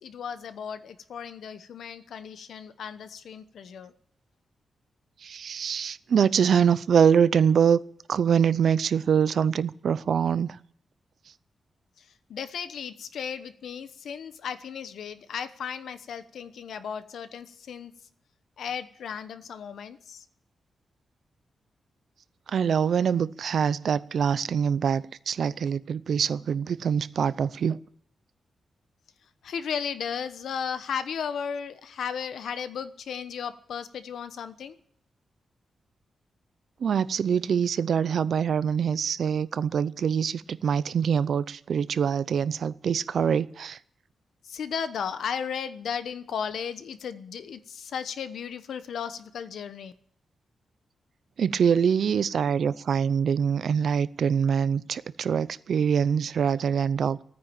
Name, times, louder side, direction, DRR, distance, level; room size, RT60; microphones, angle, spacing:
voice 1, 0.0-3.9 12.0-17.9 18.6-20.2 29.4-34.7 44.4-49.9, left 7 dB, 85° left, 1.0 m, -35 dB
voice 2, 5.2-7.8 8.1-10.6 22.5-27.8 36.8-43.8 51.4-57.2, right 7 dB, 65° right, 0.6 m, -24 dB
16.0 x 9.6 x 8.8 m
wide cardioid pair, 145°, 0 cm